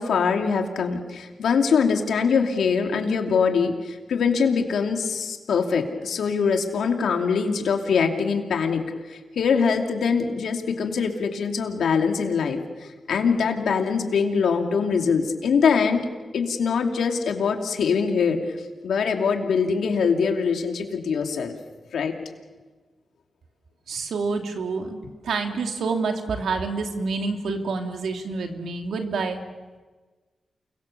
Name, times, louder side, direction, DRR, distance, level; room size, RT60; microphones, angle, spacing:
voice 1, 0.0-8.8 9.1-16.1 16.3-18.4 18.8-21.5 21.9-22.2, left 5 dB, 80° left, 4 dB, 2.9 m, -23 dB
voice 2, 23.9-29.4, right 4 dB, 80° right, 4 dB, 2.7 m, -28 dB
29.0 x 23.5 x 7.0 m, 1.3 s
cardioid pair, 55°, 0 cm